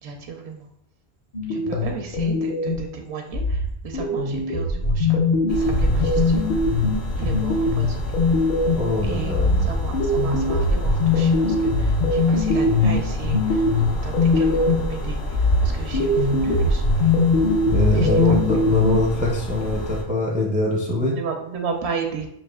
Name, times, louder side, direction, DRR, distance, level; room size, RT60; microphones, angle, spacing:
voice 1, 0.0-0.7 1.5-5.2 5.5-6.6 7.2-8.2 9.0-17.1 17.9-18.6 21.1-22.3, right 5 dB, 90° right, 3 dB, 1.0 m, -34 dB
sound 1, 1.3-2.9 3.3-8.9 9.3-14.9 15.3-19.3, left 2 dB, 50° left, 0.8 m, -21 dB
sound 2, 5.5-20.0, left 1 dB, 90° left, 1.1 m, -29 dB
voice 2, 8.8-9.7 17.7-21.2, left 1 dB, 10° right, -2 dB, 0.5 m, -23 dB
6.3 x 2.7 x 2.3 m, 0.76 s
omnidirectional pair, 1.1 m